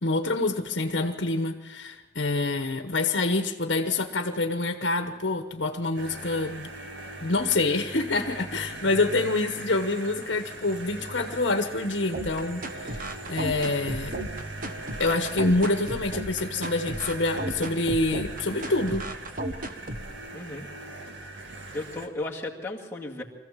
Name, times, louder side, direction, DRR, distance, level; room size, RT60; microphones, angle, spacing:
voice 1, 0.0-6.7 7.2-14.2 15.0-19.0, left 2 dB, 75° left, 6 dB, 1.1 m, -26 dB
sound 1, 6.0-22.1, right 2 dB, 80° right, 1.9 m, -40 dB
sound 2, 12.1-20.1, right 1 dB, 50° right, 1.3 m, -34 dB
voice 2, 20.3-20.7 21.7-23.2, left 2 dB, 15° left, -2 dB, 2.1 m, -35 dB
23.5 x 15.0 x 7.4 m, 1.2 s
head